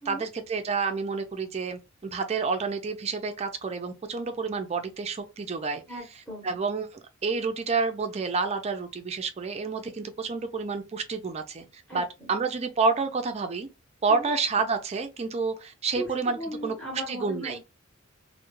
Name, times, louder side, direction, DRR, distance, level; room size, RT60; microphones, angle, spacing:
voice 1, 0.1-5.8 6.4-11.7 11.9-13.7 14.0-16.7 17.1-17.6, right 4 dB, 30° right, 0.4 m, -29 dB
voice 2, 5.9-6.6 11.9-12.3 14.1-14.3 15.9-17.6, equal, 5° left, 0.8 m, -38 dB
2.2 x 2.1 x 3.0 m
head